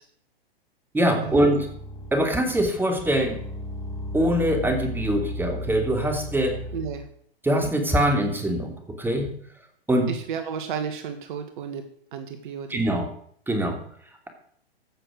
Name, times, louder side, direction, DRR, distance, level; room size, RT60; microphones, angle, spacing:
voice 1, 0.9-1.7 2.1-3.4 4.1-6.6 7.4-9.3 9.9-10.1 12.7-13.1 13.5-13.8, right 1 dB, 5° right, 4 dB, 2.9 m, -23 dB
sound 1, 1.2-2.4 3.0-7.1, left 1 dB, 15° left, 2.0 m, -35 dB
voice 2, 6.7-7.0 10.1-11.8 12.1-13.0, right 7 dB, 55° right, 7 dB, 1.8 m, -33 dB
15.0 x 6.9 x 6.5 m, 0.63 s
hypercardioid pair, 115°, 31 cm